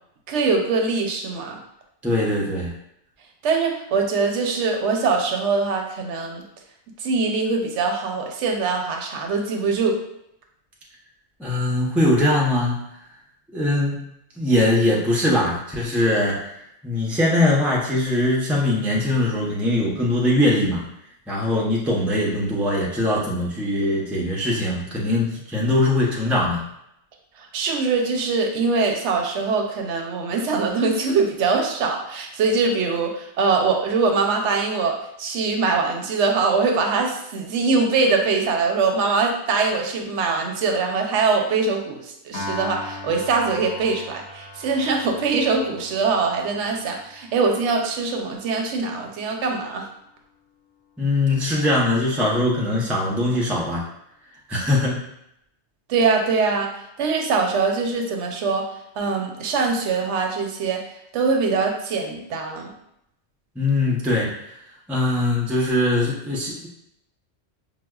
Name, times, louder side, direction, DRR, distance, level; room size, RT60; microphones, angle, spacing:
voice 1, 0.3-1.6 3.4-6.4 7.0-10.0 27.5-49.9 55.9-56.7 57.0-58.6 59.0-60.8 61.1-62.7, right 4 dB, 85° right, 3 dB, 0.9 m, -22 dB
voice 2, 2.0-2.7 11.4-12.8 13.5-14.1 14.4-16.6 16.8-20.8 21.3-26.6 51.0-53.8 54.5-55.1 63.6-64.3 64.9-66.7, left 1 dB, ahead, -3 dB, 0.4 m, -21 dB
Piano, 42.3-48.7, left 2 dB, 80° left, 1.1 m, -39 dB
4.8 x 2.1 x 2.3 m, 0.77 s
omnidirectional pair, 1.2 m